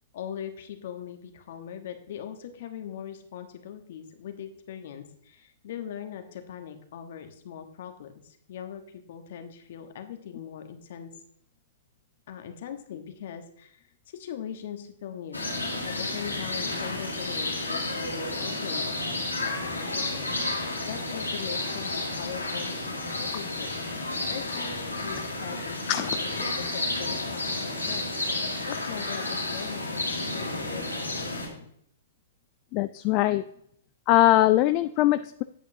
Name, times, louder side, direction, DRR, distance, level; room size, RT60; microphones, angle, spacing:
voice 1, 0.1-11.1 12.3-28.1 28.3-31.7, left 9 dB, 55° left, 7 dB, 1.2 m, -41 dB
sound 1, 15.3-31.5, left 2 dB, 85° left, 2.0 m, -31 dB
voice 2, 32.7-33.4 34.1-35.4, left 15 dB, 35° left, 12 dB, 0.3 m, -21 dB
9.2 x 8.3 x 2.7 m, 0.68 s
figure-of-eight pair, 110°, 0 cm